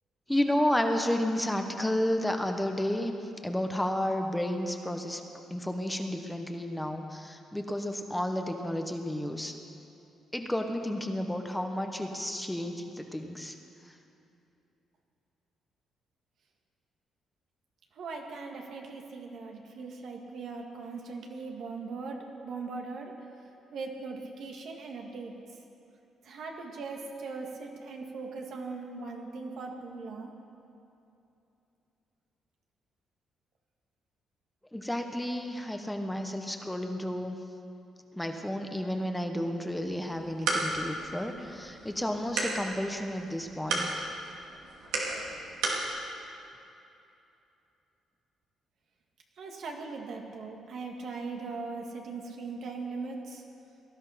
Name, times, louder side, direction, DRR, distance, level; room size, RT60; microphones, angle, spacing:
voice 1, 0.3-3.1 3.4-5.2 5.5-9.5 10.3-13.5 34.7-37.4 38.1-44.1, left 1 dB, 5° left, 5 dB, 1.2 m, -31 dB
voice 2, 18.0-23.1 23.7-25.3 26.2-30.3 49.4-53.4, right 4 dB, 70° right, 2 dB, 2.0 m, -39 dB
sound 1, 40.0-45.9, right 3 dB, 90° right, 2.6 m, -34 dB
18.5 x 11.5 x 5.8 m, 2.8 s
cardioid pair, 90°, 0 cm